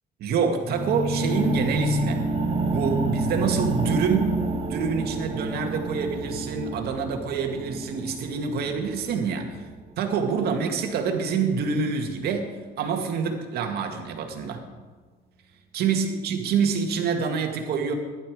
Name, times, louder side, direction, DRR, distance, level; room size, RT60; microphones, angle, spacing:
voice 1, 0.2-2.2 2.7-4.3 4.7-9.7 10.0-12.5 12.8-14.6 15.7-17.9, right 5 dB, 70° right, 4 dB, 2.2 m, -26 dB
sound 1, 0.6-10.6, right 2 dB, 35° right, 2.1 m, -28 dB
15.5 x 11.5 x 4.9 m, 1.4 s
cardioid pair, 110°, 17 cm